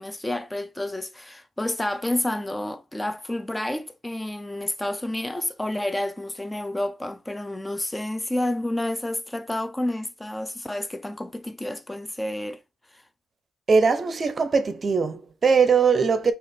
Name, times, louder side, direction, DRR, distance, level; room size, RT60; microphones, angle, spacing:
voice 1, 0.0-12.6 12.9-13.0, left 1 dB, 10° left, 0.5 m, -30 dB
voice 2, 13.7-16.3, right 5 dB, 35° right, 0.6 m, -20 dB
4.9 x 2.4 x 4.2 m
cardioid pair, 90°, 0 cm